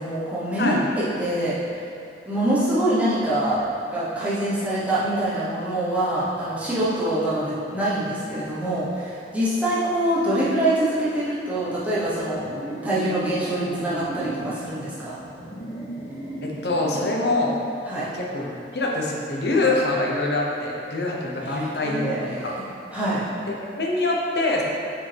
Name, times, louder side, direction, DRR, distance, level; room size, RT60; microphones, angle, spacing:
voice 1, 0.0-1.5 2.2-3.6 3.9-12.4 12.8-15.2 17.9-18.1 21.5-22.6 22.9-23.2, right 1 dB, 10° right, -10 dB, 1.0 m, -25 dB
sound 1, 12.3-14.6 15.2-17.4, right 1 dB, 25° left, 1.3 m, -34 dB
voice 2, 16.4-17.6 18.1-22.6 23.5-24.6, left 2 dB, 65° left, -2 dB, 0.9 m, -25 dB
6.0 x 4.8 x 3.4 m, 2.5 s
head